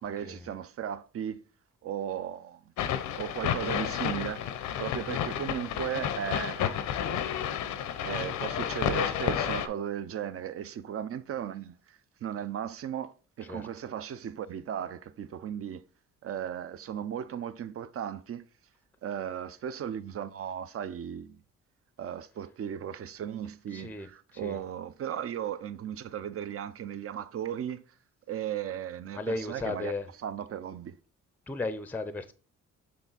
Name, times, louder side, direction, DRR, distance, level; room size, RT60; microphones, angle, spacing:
voice 1, 0.0-1.4 1.8-2.6 3.2-7.0 8.0-15.8 16.2-18.4 19.0-21.4 22.0-27.8 28.3-29.9 30.2-31.0, right 9 dB, 50° right, 0.6 m, -36 dB
sound 1, 2.8-9.7, left 9 dB, 85° left, 0.7 m, -31 dB
voice 2, 23.7-24.1 24.3-24.6 29.1-30.1 31.5-32.3, left 3 dB, 5° left, 0.5 m, -35 dB
6.9 x 3.5 x 4.0 m
cardioid pair, 90°, 30 cm